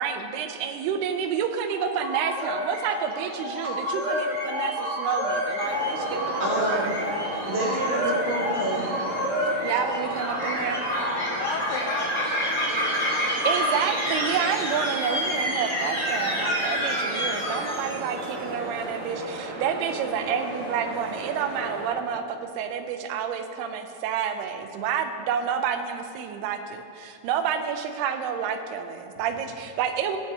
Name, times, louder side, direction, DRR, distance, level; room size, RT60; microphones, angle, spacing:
voice 1, 0.0-7.5 7.9-8.2 9.6-10.8 13.5-30.2, right 7 dB, 80° right, 7 dB, 2.5 m, -29 dB
sound 1, 1.7-18.3, equal, 20° left, 1.1 m, -28 dB
sound 2, 5.6-21.9, right 2 dB, 60° right, 1.5 m, -35 dB
voice 2, 6.4-6.9 7.4-9.0, right 1 dB, 60° left, -8 dB, 1.2 m, -28 dB
voice 3, 11.3-13.8, left 5 dB, 85° left, 3 dB, 2.6 m, -35 dB
21.0 x 8.1 x 2.8 m, 2.7 s
omnidirectional pair, 4.8 m